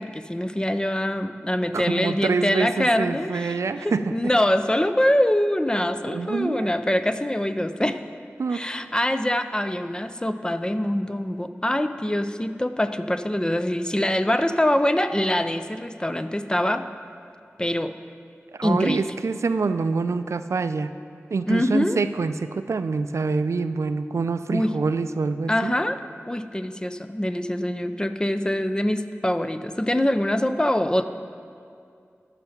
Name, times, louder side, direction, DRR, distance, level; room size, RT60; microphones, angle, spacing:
voice 1, 0.0-8.0 8.5-16.9 17.6-17.9 18.6-19.0 21.5-22.0 24.5-24.7 25.5-26.0 26.3-31.0, left 1 dB, 15° left, 9 dB, 0.5 m, -24 dB
voice 2, 1.7-4.1 6.1-6.7 8.4-8.6 18.5-20.9 21.3-25.7, right 4 dB, 85° right, 11 dB, 0.3 m, -26 dB
14.0 x 5.8 x 5.8 m, 2.3 s
wide cardioid pair, 50°, 5 cm